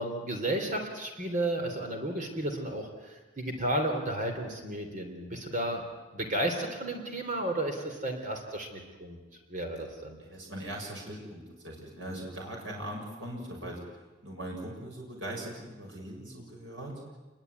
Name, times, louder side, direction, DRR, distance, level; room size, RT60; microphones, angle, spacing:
voice 1, 0.0-5.8 6.1-9.2 9.5-10.2, right 1 dB, 45° right, 4 dB, 3.4 m, -33 dB
voice 2, 10.2-13.8 14.2-17.0, right 1 dB, 85° right, -1 dB, 6.8 m, -40 dB
28.0 x 22.0 x 9.5 m, 1.2 s
head